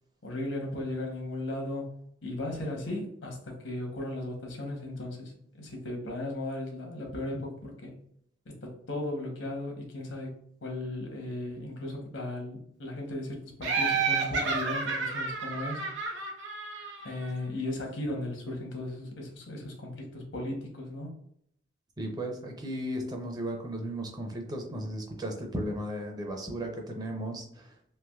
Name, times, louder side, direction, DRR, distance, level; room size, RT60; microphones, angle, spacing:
voice 1, 0.2-1.9 2.2-5.3 5.6-7.9 8.5-10.3 10.6-15.9 17.0-21.1, left 1 dB, 85° left, 1 dB, 0.9 m, -36 dB
Laughter, 13.6-17.3, right 4 dB, 80° right, 0.7 m, -30 dB
voice 2, 22.0-27.7, right 1 dB, 20° right, 2 dB, 0.5 m, -35 dB
3.3 x 2.8 x 2.3 m, 0.69 s
head